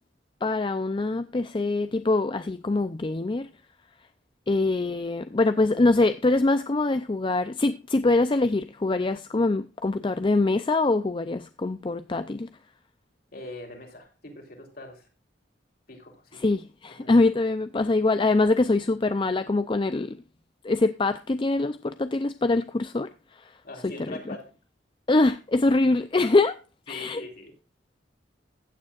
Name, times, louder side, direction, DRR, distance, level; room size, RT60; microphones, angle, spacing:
voice 1, 0.4-3.5 4.5-12.5 16.4-20.2 20.6-23.5 24.1-24.4 25.1-26.5 26.9-27.2, left 2 dB, 25° left, 0.4 m, -24 dB
voice 2, 13.3-15.1 15.9-16.5 17.0-17.1 23.6-24.5 26.9-27.5, left 2 dB, 50° left, 3.5 m, -42 dB
15.5 x 9.1 x 2.4 m
head